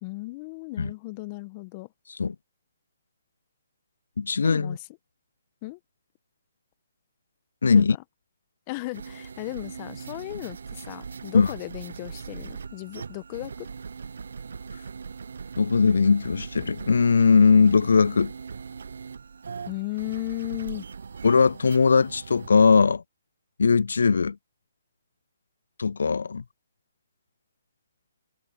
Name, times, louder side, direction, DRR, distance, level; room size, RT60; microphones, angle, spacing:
voice 1, 0.0-1.9 4.4-4.9 5.6-5.8 7.7-7.9 8.7-13.7 19.7-20.8, left 22 dB, 30° left, 1.5 m, -35 dB
voice 2, 4.2-4.8 7.6-8.0 11.3-11.5 15.6-18.3 21.2-23.0 23.6-24.4 25.8-26.4, left 5 dB, 75° left, 0.4 m, -20 dB
sound 1, 8.9-22.5, right 5 dB, 70° right, 0.9 m, -40 dB
hypercardioid pair, 140°, 0 cm